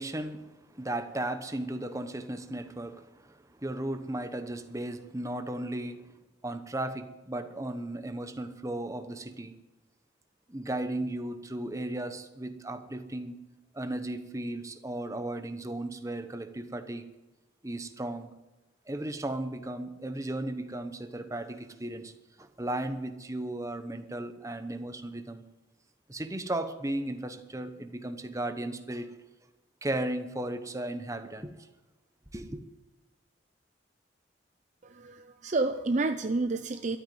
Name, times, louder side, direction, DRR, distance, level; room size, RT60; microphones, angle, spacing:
voice 1, 0.0-6.1 6.4-9.5 10.5-13.4 13.7-17.1 17.6-18.3 18.9-22.1 22.4-25.4 26.1-29.1 29.8-31.5 32.3-32.6, right 1 dB, 15° right, 9 dB, 1.0 m, -35 dB
voice 2, 34.8-37.0, right 3 dB, 40° right, 8 dB, 0.6 m, -29 dB
12.5 x 9.2 x 9.3 m, 1.1 s
head